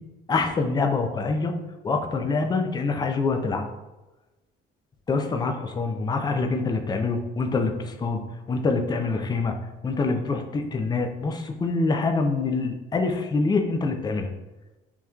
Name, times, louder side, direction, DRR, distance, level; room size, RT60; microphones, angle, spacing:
voice 1, 0.3-1.5 1.8-3.6 5.1-8.2 8.5-9.5 9.8-14.3, left 3 dB, 20° left, 4 dB, 0.5 m, -25 dB
5.3 x 3.0 x 2.3 m, 1.1 s
cardioid pair, 110°, 20 cm